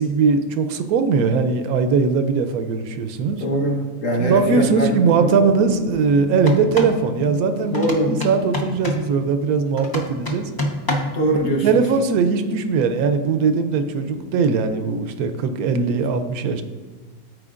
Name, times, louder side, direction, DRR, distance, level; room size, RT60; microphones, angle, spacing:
voice 1, 0.0-3.4 4.2-10.5 11.4-16.6, right 5 dB, 85° right, 8 dB, 1.1 m, -20 dB
voice 2, 3.4-5.3 7.7-8.2 11.1-11.8, right 1 dB, 60° left, -1 dB, 1.5 m, -22 dB
sound 1, 4.6-10.7 12.6-15.3, left 2 dB, 80° left, 1.4 m, -35 dB
sound 2, 6.4-7.0 7.7-9.1 9.8-11.2, left 1 dB, 25° left, 0.4 m, -27 dB
13.0 x 4.5 x 2.5 m, 1.3 s
omnidirectional pair, 1.5 m